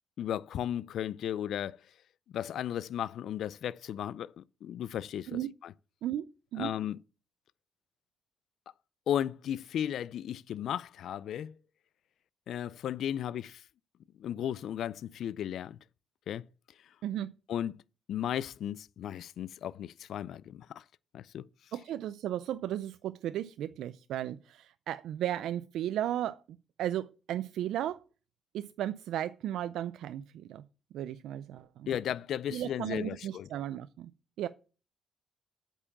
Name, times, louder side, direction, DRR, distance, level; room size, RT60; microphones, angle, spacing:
voice 1, 0.2-1.8 2.3-5.7 6.6-7.0 9.1-11.5 12.5-13.6 14.2-15.8 16.3-16.4 17.5-17.7 18.1-20.8 21.1-21.4 31.9-33.5, left 10 dB, 70° left, 0.4 m, -35 dB
voice 2, 6.0-6.7 17.0-17.3 21.7-26.4 26.8-28.0 28.5-30.7 30.9-31.9 32.5-34.1 34.4-34.5, right 12 dB, 80° right, 0.4 m, -35 dB
8.4 x 5.5 x 7.1 m
cardioid pair, 90°, 0 cm